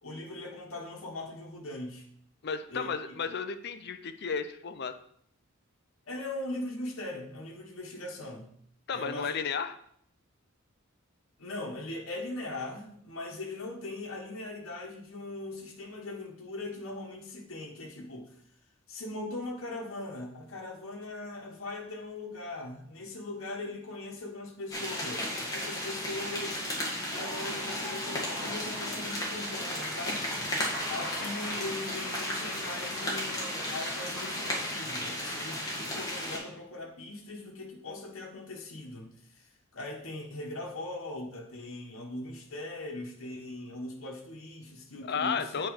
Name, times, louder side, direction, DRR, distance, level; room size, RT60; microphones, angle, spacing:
voice 1, 0.0-2.0 2.7-3.2 6.0-8.5 8.9-9.3 11.4-18.3 18.9-26.6 27.1-30.2 30.9-39.4 39.7-45.6, left 2 dB, 75° left, -2 dB, 1.3 m, -40 dB
voice 2, 2.4-4.9 8.9-9.7 31.2-31.3 45.0-45.7, left 6 dB, 55° left, 9 dB, 0.6 m, -33 dB
sound 1, 24.7-36.4, left 1 dB, 20° left, 1.8 m, -34 dB
Laughter / Applause, 27.1-35.4, left 1 dB, ahead, 2.8 m, -43 dB
8.4 x 4.4 x 4.8 m, 0.66 s
head